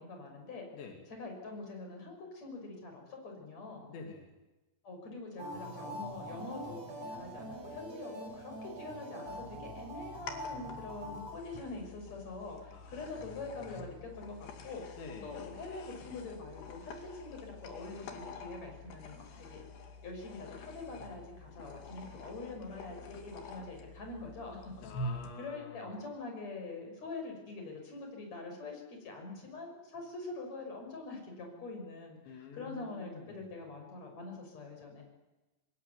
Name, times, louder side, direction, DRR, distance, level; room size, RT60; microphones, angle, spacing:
voice 1, 0.0-0.7 1.2-3.9 4.8-14.8 15.2-19.6 20.0-24.8 25.4-35.0, left 3 dB, 40° left, 3 dB, 7.1 m, -44 dB
voice 2, 3.9-4.3 12.7-13.7 14.9-15.5 24.8-25.9 32.3-33.5, left 4 dB, 85° left, 3 dB, 4.9 m, -48 dB
sound 1, 5.4-11.3, right 1 dB, 35° right, 8.0 m, -44 dB
sound 2, 9.3-25.3, left 2 dB, 70° left, 4.3 m, -47 dB
26.5 x 20.0 x 9.6 m, 1.1 s
omnidirectional pair, 5.1 m